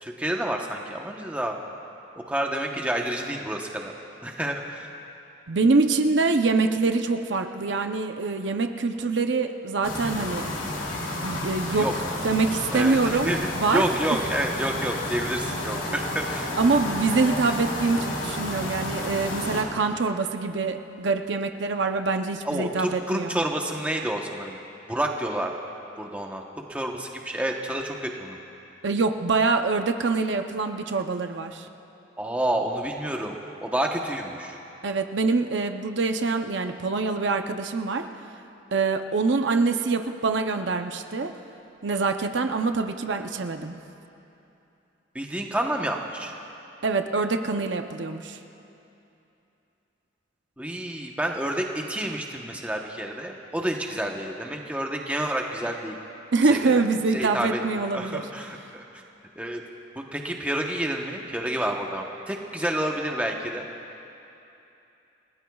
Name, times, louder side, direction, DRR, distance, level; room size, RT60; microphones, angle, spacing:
voice 1, 0.0-1.6 2.3-3.9 4.2-4.9 11.7-11.9 12.7-13.0 13.3-16.5 22.4-24.6 24.9-25.5 26.0-26.4 26.7-28.4 32.2-34.6 45.1-46.3 50.6-56.0 56.5-56.8 57.1-58.8 59.4-59.6 60.1-63.7, right 1 dB, 5° right, 1 dB, 1.0 m, -29 dB
voice 2, 5.5-10.5 11.2-11.9 12.2-13.8 16.6-23.4 28.8-31.7 34.8-38.1 38.7-41.3 41.8-43.8 46.8-48.4 56.3-58.3, right 3 dB, 70° right, 6 dB, 0.7 m, -25 dB
sound 1, 9.8-19.6, left 1 dB, 85° left, 2.7 m, -31 dB
30.0 x 18.5 x 2.4 m, 2.8 s
head